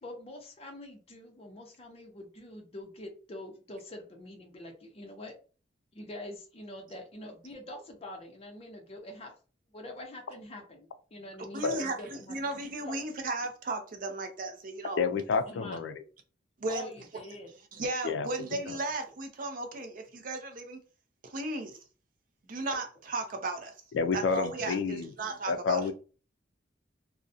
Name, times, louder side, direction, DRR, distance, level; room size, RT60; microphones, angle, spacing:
voice 1, 0.0-5.3 5.9-9.3 9.7-12.4 12.9-13.1 15.4-15.8 16.7-17.5, left 1 dB, 35° left, 0.6 m, -45 dB
voice 2, 11.5-15.0 16.6-16.9 17.7-20.8 21.2-21.8 22.5-23.7 24.1-25.8, right 2 dB, 45° right, 0.5 m, -35 dB
voice 3, 15.0-16.0 18.0-18.3 18.7-18.8 23.9-25.1 25.5-25.9, left 5 dB, 75° left, 0.3 m, -29 dB
2.4 x 2.1 x 2.6 m
head